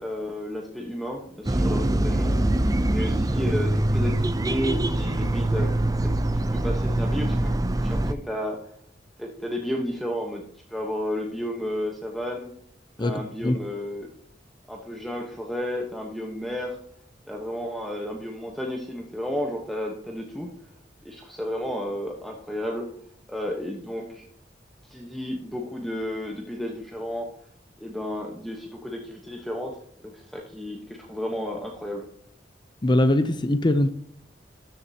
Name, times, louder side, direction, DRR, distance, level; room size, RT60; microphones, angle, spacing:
voice 1, 0.0-2.4 2.9-8.6 9.2-10.4 10.7-12.5 13.0-14.1 14.7-16.8 17.3-20.5 21.0-22.9 23.3-24.2 24.8-27.3 27.8-29.8 30.0-32.1, equal, ahead, 1.1 m, -32 dB
sound 1, 1.4-8.1, right 1 dB, 20° right, 0.5 m, -24 dB
voice 2, 13.0-13.6 32.8-33.9, left 1 dB, 25° left, 0.6 m, -22 dB
13.5 x 7.2 x 2.8 m
head